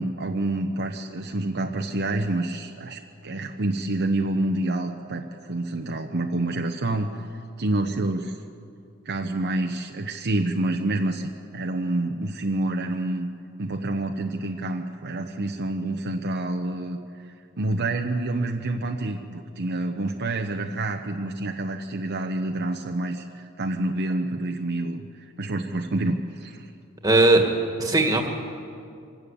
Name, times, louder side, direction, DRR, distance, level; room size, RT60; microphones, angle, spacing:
voice 1, 0.0-8.4 9.0-13.3 13.6-17.0 17.2-26.7, right 2 dB, 50° right, 3 dB, 0.9 m, -28 dB
voice 2, 27.0-27.5 27.8-28.3, right 2 dB, 15° right, 3 dB, 2.0 m, -18 dB
25.0 x 12.5 x 8.5 m, 2.4 s
head